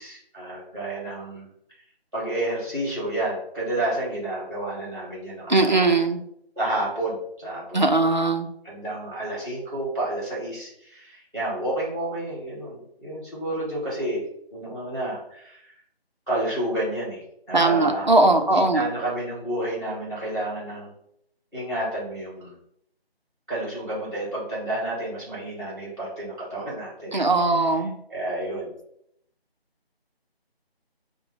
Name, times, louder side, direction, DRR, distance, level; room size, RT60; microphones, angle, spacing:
voice 1, 0.0-1.5 2.1-6.0 6.5-8.3 8.6-14.2 14.5-15.7 16.3-18.1 18.5-20.9 21.5-22.5 23.5-27.8 28.1-28.7, right 1 dB, 15° right, -6 dB, 1.5 m, -30 dB
voice 2, 5.5-6.2 7.7-8.5 17.5-18.8 27.1-27.9, right 2 dB, 50° right, 5 dB, 0.4 m, -20 dB
4.3 x 2.0 x 3.8 m, 0.72 s
figure-of-eight pair, 175°, 31 cm